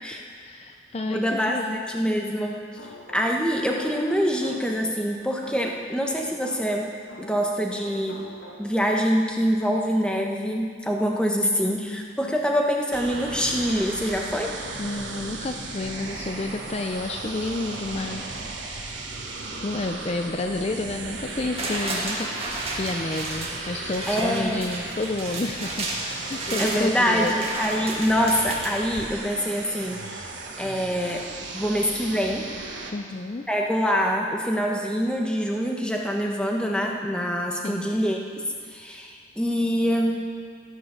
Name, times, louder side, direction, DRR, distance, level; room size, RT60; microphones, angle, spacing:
voice 1, 0.4-1.8 11.3-12.1 14.8-19.1 19.6-22.3 22.8-25.9 26.3-27.4 32.9-33.5 37.5-37.9, left 2 dB, 35° left, 4 dB, 0.4 m, -31 dB
voice 2, 1.1-2.6 3.1-6.9 7.2-8.2 8.6-14.5 24.1-24.6 26.5-30.3 30.6-31.2 31.5-32.5 33.5-38.2 38.7-40.3, equal, 5° left, 0 dB, 1.1 m, -25 dB
sound 1, 2.8-4.9 5.4-7.5 7.8-9.0, left 1 dB, 80° left, 2.3 m, -44 dB
sound 2, 12.9-32.9, right 3 dB, 75° right, 1.5 m, -36 dB
sound 3, 21.2-29.4 29.8-29.9, right 2 dB, 30° right, 1.7 m, -33 dB
17.0 x 6.5 x 6.7 m, 2.1 s
head